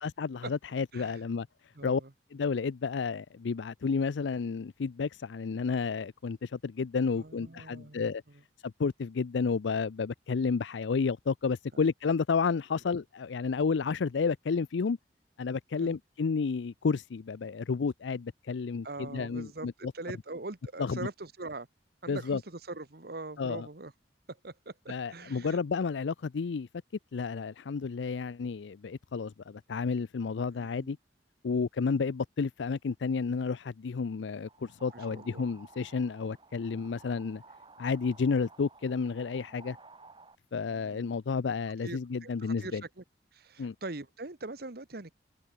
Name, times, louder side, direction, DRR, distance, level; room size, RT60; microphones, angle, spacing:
voice 1, 0.0-1.5 1.8-2.0 2.3-8.2 8.6-15.0 15.4-19.9 20.8-21.1 22.1-22.4 23.4-23.7 24.9-26.7 27.1-31.0 31.4-37.4 37.8-39.8 40.5-42.8 43.6-43.7, left 5 dB, 80° left, 0.5 m, -31 dB
voice 2, 1.7-2.1 7.1-8.1 15.8-16.0 18.8-21.7 22.0-23.9 24.3-25.6 30.5-31.0 31.5-31.6 34.9-35.5 40.7-41.1 41.8-43.0 43.3-45.1, right 2 dB, 55° right, 1.3 m, -42 dB
sound 1, 34.4-40.4, right 3 dB, 25° right, 5.4 m, -54 dB
head